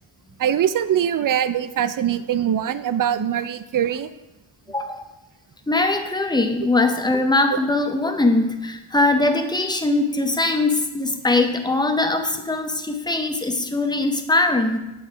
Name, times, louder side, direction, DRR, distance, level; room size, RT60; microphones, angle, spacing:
voice 1, 0.4-4.1, right 9 dB, 45° right, 13 dB, 0.4 m, -22 dB
voice 2, 4.7-5.0 5.7-14.8, left 2 dB, 10° left, 6 dB, 0.7 m, -21 dB
7.7 x 4.7 x 5.0 m, 1.0 s
wide cardioid pair, 90°, 50 cm